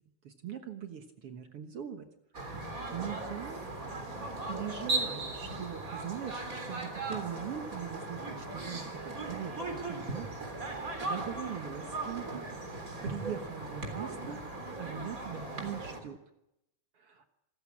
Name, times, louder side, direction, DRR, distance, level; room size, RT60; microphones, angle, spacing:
voice 1, 0.2-2.1 2.4-3.6 4.2-10.3 10.6-12.5 13.0-14.5 14.8-16.2 16.9-17.3, right 9 dB, 55° right, 6 dB, 2.0 m, -41 dB
sound 1, 2.3-16.0, right 2 dB, 25° right, 3.8 m, -38 dB
26.0 x 15.0 x 8.6 m, 0.86 s
omnidirectional pair, 3.5 m